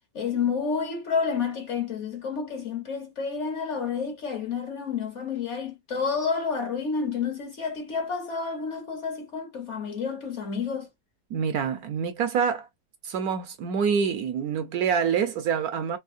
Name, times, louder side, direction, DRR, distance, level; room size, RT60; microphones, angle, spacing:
voice 1, 0.1-10.9, left 5 dB, 50° left, 0.9 m, -30 dB
voice 2, 11.3-12.7 13.0-16.0, right 7 dB, 70° right, 1.0 m, -26 dB
3.5 x 2.8 x 2.4 m
omnidirectional pair, 1.9 m